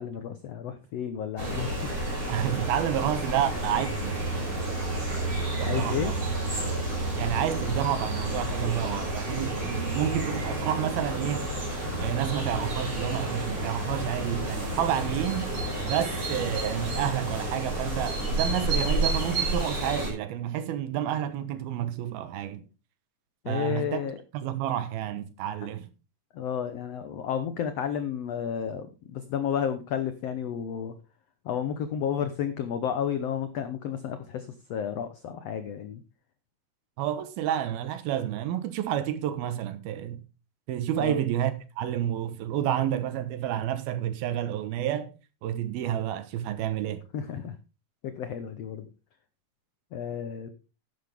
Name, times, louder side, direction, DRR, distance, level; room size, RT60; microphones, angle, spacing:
voice 1, 0.0-1.8 5.6-6.1 23.4-24.2 26.3-30.9 31.4-36.0 41.0-41.2 47.1-47.5 48.0-48.9 49.9-50.5, left 8 dB, 80° left, 1.4 m, -32 dB
sound 1, 1.4-20.1, right 1 dB, 35° right, 6.5 m, -30 dB
voice 2, 2.3-4.1 5.6-6.2 7.2-11.5 12.0-15.5 15.8-22.6 23.5-24.0 24.3-25.9 37.0-40.2 40.7-45.1 45.4-47.0, right 11 dB, 90° right, 3.1 m, -29 dB
12.0 x 10.5 x 3.5 m
omnidirectional pair, 4.2 m